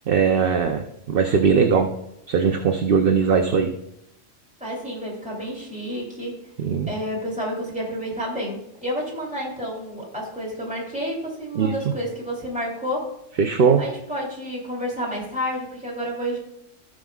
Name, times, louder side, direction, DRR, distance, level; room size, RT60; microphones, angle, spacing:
voice 1, 0.1-1.9 2.3-3.7 6.6-6.9 11.5-11.7 13.4-13.8, right 6 dB, 55° right, 4 dB, 0.8 m, -19 dB
voice 2, 4.6-6.4 6.9-13.1 13.8-16.4, equal, 5° right, -4 dB, 3.0 m, -30 dB
15.5 x 6.3 x 2.4 m, 0.81 s
omnidirectional pair, 1.3 m